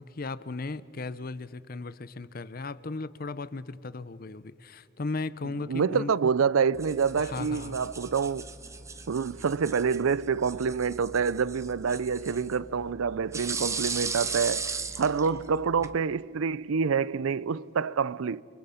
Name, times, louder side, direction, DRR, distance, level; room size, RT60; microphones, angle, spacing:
voice 1, 0.0-6.1 7.2-7.8, left 3 dB, 45° left, 0.6 m, -36 dB
voice 2, 5.7-8.5 9.1-18.4, right 6 dB, 80° right, 0.5 m, -27 dB
sound 1, 6.7-16.0, right 4 dB, 15° right, 0.9 m, -37 dB
29.5 x 24.5 x 5.7 m
head